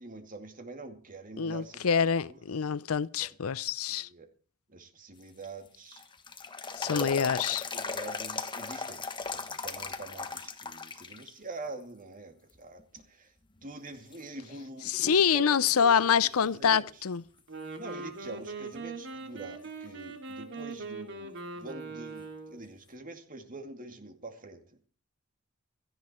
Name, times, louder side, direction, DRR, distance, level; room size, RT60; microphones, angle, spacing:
voice 1, 0.0-1.9 2.3-2.4 3.2-3.4 3.9-4.3 4.7-6.0 6.8-13.3 13.6-17.0 17.8-24.6, right 3 dB, 40° right, 2.3 m, -45 dB
voice 2, 1.4-4.1 6.8-7.6 14.9-17.2, left 7 dB, 75° left, 0.6 m, -26 dB
sound 1, 5.2-11.3 11.7-11.8 12.5-13.0 13.6-13.7 14.1-15.4 15.7-15.8 19.1-19.2 22.2-22.3, left 4 dB, 20° left, 1.3 m, -38 dB
Wind instrument woodwind instrument, 17.4-22.7, right 3 dB, 60° right, 2.8 m, -41 dB
17.0 x 14.0 x 4.4 m
head